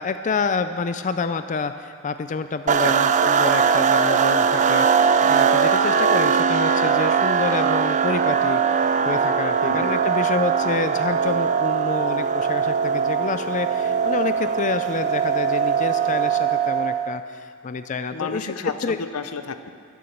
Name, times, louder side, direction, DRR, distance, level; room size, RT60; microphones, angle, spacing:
voice 1, 0.0-18.5 18.8-19.0, left 4 dB, 35° left, 10 dB, 0.4 m, -28 dB
sound 1, 2.7-17.2, right 6 dB, 35° right, 0.4 m, -20 dB
voice 2, 9.6-9.9 18.1-19.7, left 4 dB, 85° left, 10 dB, 0.7 m, -32 dB
11.5 x 11.0 x 7.2 m, 2.2 s
head